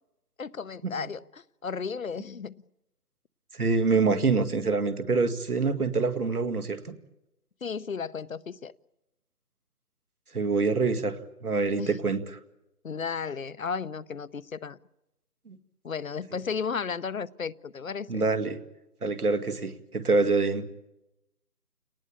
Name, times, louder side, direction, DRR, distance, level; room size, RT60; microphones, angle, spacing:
voice 1, 0.4-2.5 7.6-8.7 11.8-12.0 12.8-14.8 15.8-18.2, left 6 dB, 60° left, 0.8 m, -34 dB
voice 2, 3.5-6.9 10.3-11.2 11.4-12.2 15.5-15.6 18.1-18.6 19.0-20.6, right 4 dB, 70° right, 2.2 m, -25 dB
29.0 x 19.0 x 8.7 m
figure-of-eight pair, 170°, 47 cm